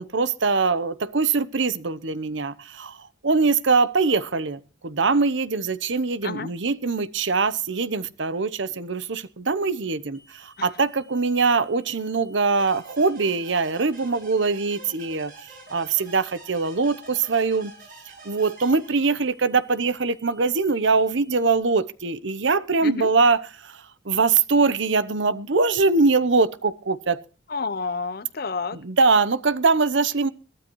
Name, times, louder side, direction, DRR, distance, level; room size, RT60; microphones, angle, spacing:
voice 1, 0.0-3.0 3.2-15.3 15.7-17.7 18.2-23.7 24.1-27.2 28.9-30.3, right 4 dB, 70° right, 0.9 m, -22 dB
voice 2, 6.2-6.5 10.6-10.9 22.8-23.1 27.5-28.8, left 4 dB, 50° left, 0.7 m, -30 dB
sound 1, 10.1-21.6, right 2 dB, 35° left, 7.1 m, -57 dB
sound 2, 12.6-19.4, right 2 dB, 45° right, 7.3 m, -47 dB
21.5 x 12.5 x 3.1 m
head